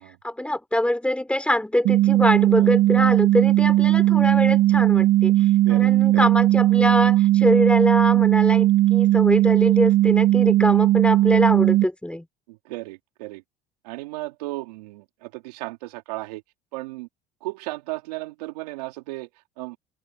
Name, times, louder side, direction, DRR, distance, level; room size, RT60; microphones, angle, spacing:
voice 1, 0.2-12.3, left 1 dB, 5° left, 5.4 m, -24 dB
sound 1, 1.8-11.8, right 15 dB, 65° right, 2.5 m, -18 dB
voice 2, 5.3-6.3 12.5-13.4 13.8-16.4 16.7-17.1 17.4-19.3 19.6-19.8, right 21 dB, 85° right, 3.7 m, -35 dB
open air
supercardioid pair, 80°, 20 cm